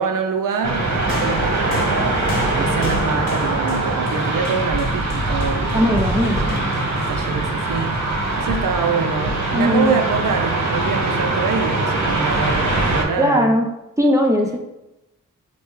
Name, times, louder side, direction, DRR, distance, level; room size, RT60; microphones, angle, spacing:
voice 1, 0.0-2.1 2.5-6.1 6.9-8.0 8.4-13.5, right 5 dB, 80° right, 5 dB, 0.5 m, -25 dB
sound 1, 0.6-13.0, right 2 dB, 55° right, 1.1 m, -22 dB
sound 2, 1.1-8.6 9.6-9.7, left 2 dB, 85° left, 0.9 m, -35 dB
voice 2, 5.7-6.4 9.5-10.0 13.2-13.7 14.0-14.6, equal, 10° right, 0 dB, 0.7 m, -18 dB
6.2 x 2.2 x 3.2 m, 0.91 s
cardioid pair, 60°, 32 cm